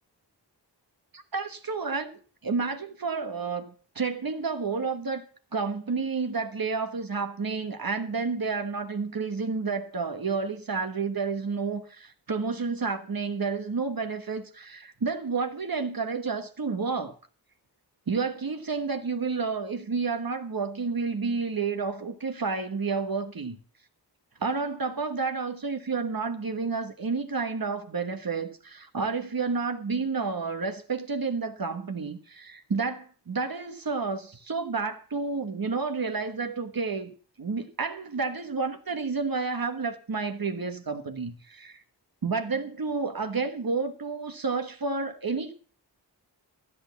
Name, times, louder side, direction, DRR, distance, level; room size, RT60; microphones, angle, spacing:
voice 1, 1.1-5.3 5.5-17.2 18.1-23.6 24.4-37.1 37.4-41.8 42.2-45.5, right 4 dB, 55° right, 1.4 m, -30 dB
13.0 x 8.5 x 6.9 m
wide cardioid pair, 85°, 42 cm